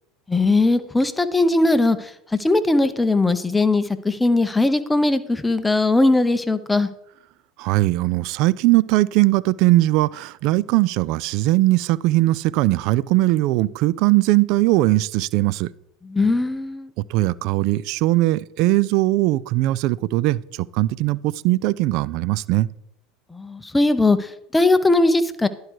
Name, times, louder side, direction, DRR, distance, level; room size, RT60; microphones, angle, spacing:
voice 1, 0.3-2.1 2.4-6.9 16.1-16.9 23.3-25.5, left 2 dB, 10° left, 12 dB, 0.7 m, -19 dB
voice 2, 7.6-15.7 17.0-22.7, right 18 dB, 60° right, 21 dB, 0.3 m, -20 dB
10.5 x 4.6 x 4.7 m, 0.76 s
hypercardioid pair, 85°, 0 cm